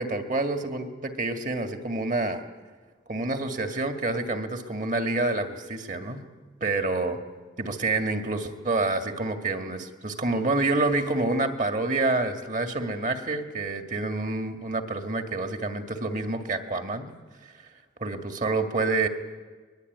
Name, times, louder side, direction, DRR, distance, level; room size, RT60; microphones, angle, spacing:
voice 1, 0.0-2.4 3.1-6.3 6.6-7.2 7.6-17.1 18.0-19.1, right 2 dB, 45° right, 6 dB, 2.1 m, -28 dB
22.5 x 21.5 x 9.5 m, 1.4 s
head